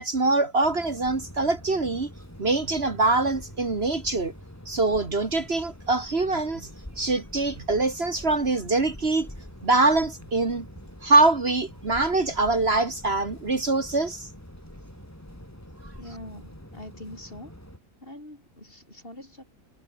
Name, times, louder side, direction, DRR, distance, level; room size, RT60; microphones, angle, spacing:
voice 1, 0.0-2.1 2.4-4.3 4.7-6.7 7.0-9.3 9.6-10.7 11.0-14.3, right 3 dB, 45° right, 2.3 m, -24 dB
sound 1, 0.6-17.8, left 1 dB, 10° left, 4.5 m, -45 dB
voice 2, 16.0-17.5 18.0-19.4, left 1 dB, 40° left, 7.8 m, -43 dB
omnidirectional pair, 1.4 m